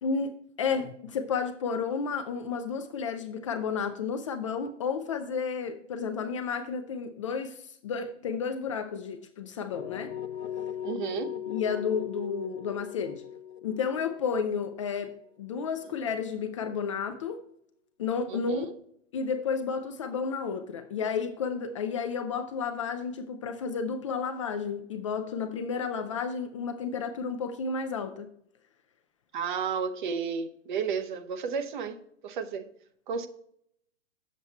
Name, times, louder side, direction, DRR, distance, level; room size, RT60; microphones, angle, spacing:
voice 1, 0.0-10.1 11.5-13.2 13.6-17.4 18.0-18.7 19.1-28.3, left 5 dB, 25° left, 0.4 m, -32 dB
sound 1, 9.7-15.6, left 10 dB, 60° left, 0.8 m, -38 dB
voice 2, 10.8-11.3 18.3-18.6 29.3-32.0 32.2-32.7 33.1-33.3, right 6 dB, 40° right, 0.8 m, -32 dB
7.8 x 7.3 x 4.2 m
figure-of-eight pair, 115°, 36 cm